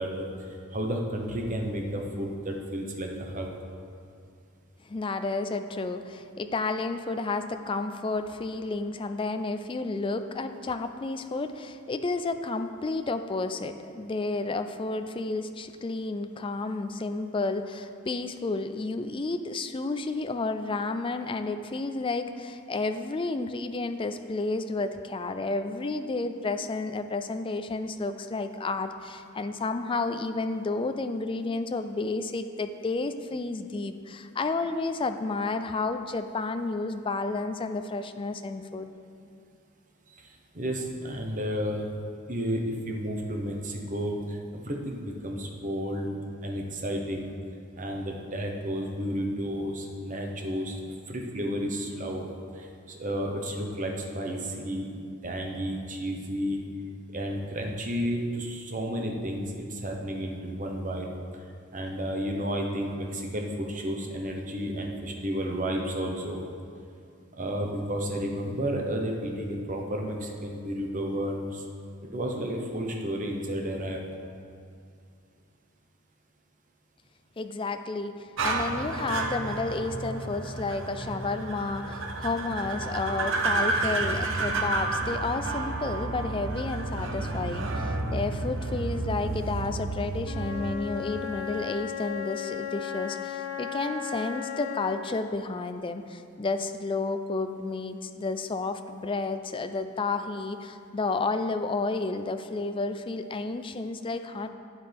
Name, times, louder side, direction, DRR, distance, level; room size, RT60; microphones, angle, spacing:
voice 1, 0.0-3.5 40.1-41.9 42.3-46.1 46.4-47.3 47.8-50.8 51.1-52.3 52.5-54.9 55.2-56.6 57.1-61.1 61.7-66.4 67.3-71.6 72.1-74.0, equal, 35° right, 1 dB, 1.0 m, -32 dB
voice 2, 4.8-38.9 77.4-104.5, left 3 dB, 25° left, 9 dB, 0.3 m, -31 dB
sound 1, 78.4-90.8, right 2 dB, 60° right, 0.8 m, -31 dB
Wind instrument woodwind instrument, 90.2-95.2, left 8 dB, 90° left, 0.7 m, -35 dB
11.5 x 8.6 x 3.5 m, 2.4 s
head